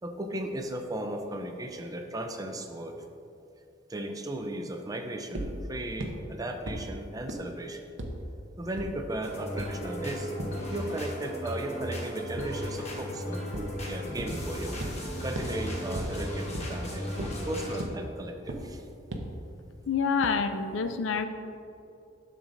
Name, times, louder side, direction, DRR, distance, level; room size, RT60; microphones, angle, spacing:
voice 1, 0.0-2.9 3.9-7.9 8.6-10.3 10.7-14.8 15.2-18.8, right 1 dB, 20° right, 5 dB, 0.5 m, -36 dB
sound 1, 5.3-5.5 6.0-6.1 6.7-6.8 7.3-7.4 8.0-8.1 8.8-8.9 9.6-9.7 10.4-10.5 12.4-12.5 13.5-13.6 14.2-14.3 14.8-14.9 15.3-15.5 15.9-16.0 16.5-16.6 17.2-17.3 17.8-17.9 18.5-18.6 19.1-19.2, right 2 dB, 70° right, 0.8 m, -34 dB
sound 2, 9.2-17.8, equal, 35° left, 1.1 m, -36 dB
voice 2, 19.9-21.3, left 5 dB, 75° left, 9 dB, 0.5 m, -27 dB
11.0 x 6.6 x 2.6 m, 2.7 s
head